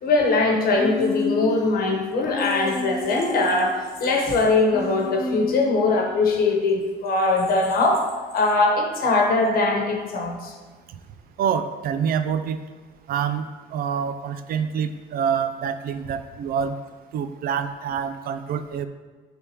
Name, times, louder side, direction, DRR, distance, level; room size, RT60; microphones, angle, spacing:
voice 1, 0.0-8.1 8.3-10.5, left 3 dB, 60° left, 1 dB, 1.1 m, -21 dB
Human voice, 0.8-1.7 2.2-3.8 4.7-5.9, left 3 dB, 25° left, 0.4 m, -30 dB
voice 2, 11.4-12.6 13.1-16.8 17.1-18.9, right 7 dB, 60° right, 10 dB, 0.4 m, -26 dB
9.5 x 3.5 x 2.9 m, 1.4 s
cardioid pair, 110°, 17 cm